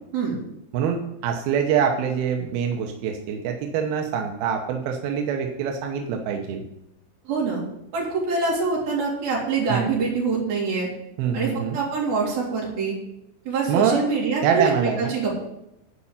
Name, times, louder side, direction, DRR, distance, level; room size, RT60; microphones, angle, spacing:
voice 1, 0.7-6.6 9.7-9.9 11.2-11.8 13.7-14.0 14.4-15.1, right 7 dB, 75° right, 3 dB, 2.3 m, -24 dB
voice 2, 7.3-7.6 7.9-10.9 11.3-12.9 13.5-15.4, right 4 dB, 50° right, -4 dB, 5.0 m, -25 dB
11.5 x 5.4 x 8.7 m, 0.81 s
omnidirectional pair, 5.6 m